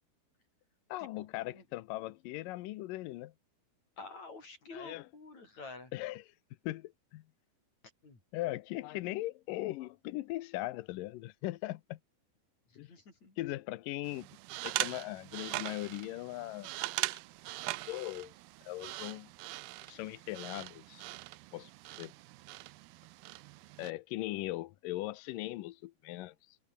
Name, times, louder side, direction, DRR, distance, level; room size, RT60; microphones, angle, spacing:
voice 1, 0.9-3.3 4.7-5.1 5.9-6.3 6.6-7.2 8.3-12.0 12.8-12.9 13.4-14.3 14.6-16.7 17.1-17.2 17.9-18.3 18.7-19.3 19.9-21.1 21.5-21.7 22.0-22.1 23.8-26.6, left 17 dB, 75° left, 2.1 m, -39 dB
voice 2, 4.0-5.9 8.0-8.2 12.7-13.4, left 3 dB, 45° left, 8.7 m, -49 dB
sound 1, 14.0-23.9, right 20 dB, 80° right, 2.4 m, -41 dB
open air
omnidirectional pair, 4.7 m